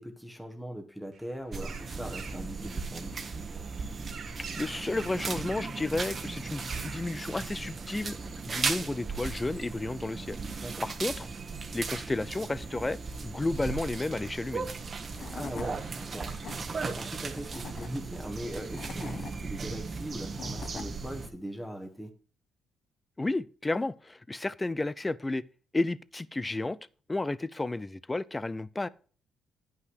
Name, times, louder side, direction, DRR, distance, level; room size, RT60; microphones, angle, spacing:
voice 1, 0.0-3.2 10.6-10.8 15.0-22.1, equal, ahead, 1.3 m, -40 dB
sound 1, 1.1-8.0, right 5 dB, 60° right, 1.9 m, -48 dB
sound 2, 1.5-21.3, right 4 dB, 40° right, 1.2 m, -37 dB
voice 2, 4.6-10.4 10.8-11.3 11.7-13.0 13.2-14.7 23.2-25.4 25.7-26.8 27.1-28.9, left 2 dB, 20° left, 0.5 m, -32 dB
Tools / Wood, 14.8-14.9 15.2-15.7 16.2-16.6 17.3-17.9 18.5-19.3 20.1-20.9, left 6 dB, 55° left, 1.1 m, -42 dB
10.0 x 5.7 x 4.7 m
cardioid pair, 90°, 0 cm